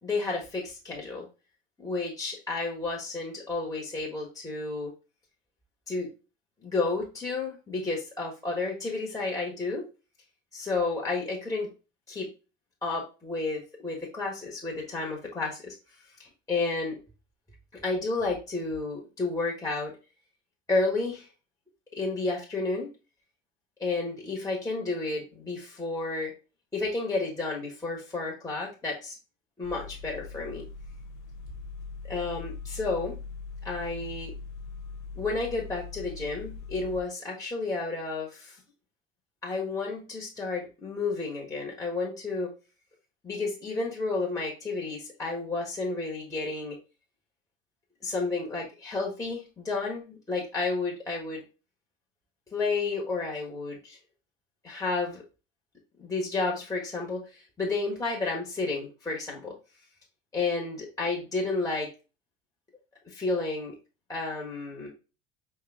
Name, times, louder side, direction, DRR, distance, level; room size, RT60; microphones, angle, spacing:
voice 1, 0.0-1.3 1.8-4.9 5.9-6.1 6.6-9.8 10.5-11.7 12.1-12.3 12.8-15.7 16.2-17.0 17.8-19.9 20.7-21.3 21.9-22.9 23.8-26.3 26.7-29.1 29.6-30.7 32.1-33.2 33.6-34.3 35.2-38.6 39.4-42.5 43.2-46.8 48.0-51.4 52.5-54.0 54.6-55.2 56.0-59.5 60.3-61.9 63.0-63.7 64.1-64.9, left 3 dB, 10° left, -2 dB, 1.2 m, -31 dB
sound 1, 29.6-37.0, left 5 dB, 50° left, 0.7 m, -41 dB
5.3 x 2.3 x 3.4 m, 0.31 s
figure-of-eight pair, 70°, 37 cm